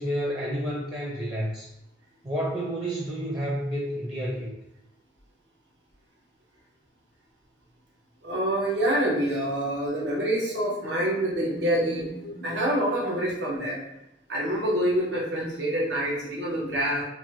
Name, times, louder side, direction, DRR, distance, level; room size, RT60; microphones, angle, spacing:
voice 1, 0.0-1.7 2.2-4.5, equal, 25° right, -5 dB, 0.5 m, -30 dB
voice 2, 8.2-12.1 12.4-13.8 14.3-17.0, right 1 dB, 80° right, -4 dB, 0.9 m, -26 dB
sound 1, 10.4-13.9, equal, 60° left, 0.5 m, -43 dB
3.2 x 2.1 x 2.9 m, 0.87 s
head